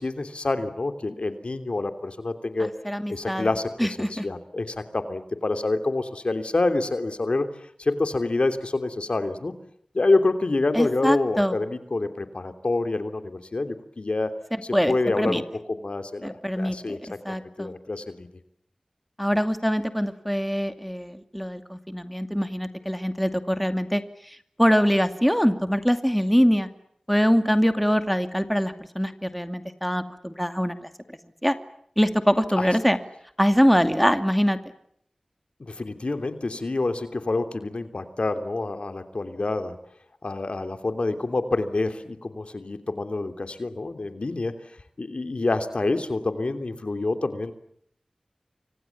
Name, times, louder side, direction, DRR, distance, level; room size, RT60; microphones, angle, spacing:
voice 1, 0.0-2.7 3.1-7.5 7.8-9.5 9.9-14.3 14.9-15.4 15.8-17.0 17.6-18.3 32.6-32.7 35.6-39.7 40.2-44.6 45.0-47.5, left 2 dB, 65° left, 8 dB, 3.1 m, -27 dB
voice 2, 2.6-3.5 3.8-4.3 10.7-11.6 14.5-15.4 16.2-17.0 17.2-17.7 19.2-26.7 27.1-31.6 32.0-33.0 33.4-34.6, equal, ahead, 8 dB, 2.4 m, -24 dB
29.5 x 25.5 x 7.3 m, 0.68 s
wide cardioid pair, 50°, 2 cm